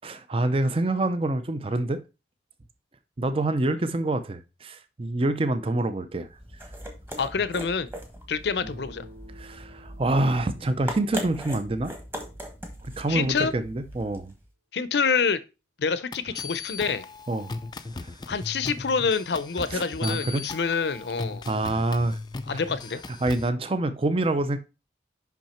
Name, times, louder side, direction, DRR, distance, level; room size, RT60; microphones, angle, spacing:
voice 1, 0.0-2.0 3.2-6.3 9.4-11.9 12.8-14.3 17.3-17.5 18.0-18.1 19.7-20.5 21.5-22.2 22.5-22.6 23.2-24.6, right 2 dB, 30° right, 0.5 m, -26 dB
sound 1, 6.2-14.4, equal, 15° right, 1.3 m, -40 dB
voice 2, 7.2-7.9 8.3-9.1 13.1-13.5 14.7-15.4 15.8-17.0 18.3-21.4 22.5-23.0, left 5 dB, 70° left, 0.6 m, -27 dB
sound 2, 8.5-12.2, equal, 65° right, 2.8 m, -50 dB
sound 3, 16.1-23.5, left 3 dB, 25° left, 0.4 m, -38 dB
5.9 x 5.6 x 4.3 m
head